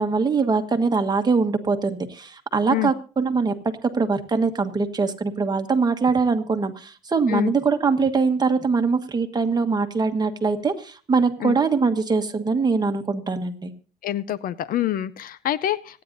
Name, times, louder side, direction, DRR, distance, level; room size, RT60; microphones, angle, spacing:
voice 1, 0.0-3.5 3.9-13.7, right 4 dB, 25° right, 6 dB, 1.4 m, -22 dB
voice 2, 14.0-16.0, left 13 dB, 60° left, 18 dB, 0.6 m, -26 dB
26.0 x 9.5 x 2.6 m, 0.38 s
cardioid pair, 110°, 17 cm